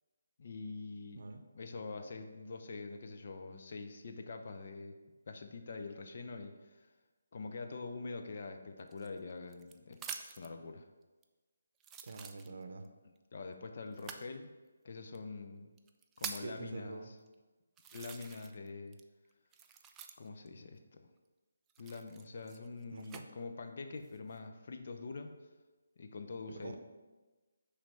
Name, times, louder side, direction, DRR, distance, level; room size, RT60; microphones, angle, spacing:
voice 1, 0.4-1.2 1.5-5.0 5.3-6.9 7.3-10.9 13.3-14.5 14.8-15.7 16.2-17.2 17.9-19.0 20.2-21.1 21.8-25.3 26.0-26.8, left 3 dB, 50° left, 5 dB, 0.6 m, -45 dB
sound 1, 8.9-10.5 11.2-11.3 11.8-12.9 13.9-14.3 15.1-15.2 15.8-16.6 17.3-17.4 17.8-18.7 18.9-20.5 21.7-23.2 23.9-24.4, right 7 dB, 15° right, 0.3 m, -47 dB
voice 2, 12.0-12.8 16.4-17.1 22.9-23.3 26.6-26.8, right 3 dB, 60° right, 6 dB, 0.7 m, -46 dB
5.8 x 3.3 x 5.4 m, 1.2 s
figure-of-eight pair, 155°, 0 cm